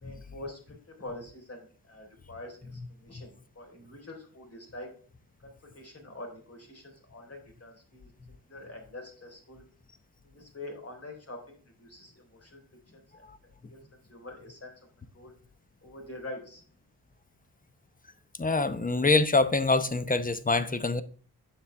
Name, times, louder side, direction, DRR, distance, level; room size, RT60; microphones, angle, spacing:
voice 1, 0.0-4.9 5.4-8.1 8.5-9.6 10.2-12.6 12.9-13.2 13.7-13.8 14.1-14.7 15.1-15.3 15.8-16.6, left 2 dB, 35° left, 3.9 m, -45 dB
voice 2, 18.4-21.0, left 3 dB, 20° left, 0.8 m, -25 dB
8.5 x 7.2 x 3.4 m
wide cardioid pair, 90°, 39 cm